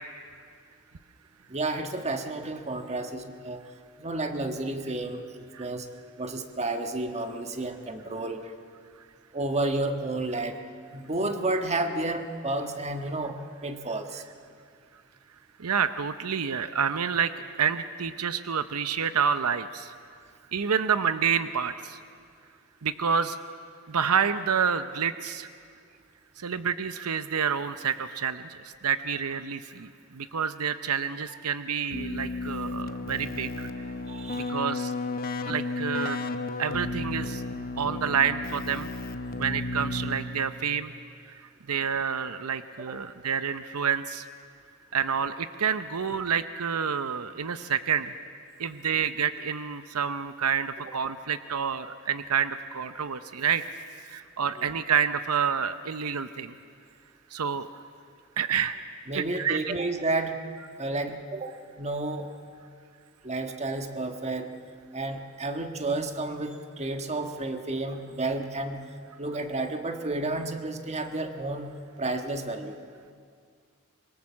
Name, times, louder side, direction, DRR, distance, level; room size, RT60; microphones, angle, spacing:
voice 1, 1.5-3.6 4.0-5.9 6.2-8.5 9.3-10.6 10.9-14.2 34.1-34.6 54.6-54.7 59.1-60.4 60.8-62.3 63.2-64.5 64.9-68.8 69.2-71.7 72.0-72.8, right 2 dB, 30° right, 6 dB, 1.5 m, -31 dB
voice 2, 15.6-20.0 20.5-22.0 22.8-23.4 23.9-25.5 26.4-33.9 34.3-34.9 35.5-36.2 36.6-37.4 37.8-38.9 39.4-40.9 41.3-44.3 44.9-48.1 48.6-53.6 54.0-56.5 57.3-57.7 58.4-58.8 59.1-59.8, right 7 dB, 85° right, 11 dB, 0.8 m, -28 dB
Keyboard (musical), 31.9-40.6, left 2 dB, 40° left, 0.9 m, -33 dB
25.5 x 23.0 x 7.3 m, 2.2 s
head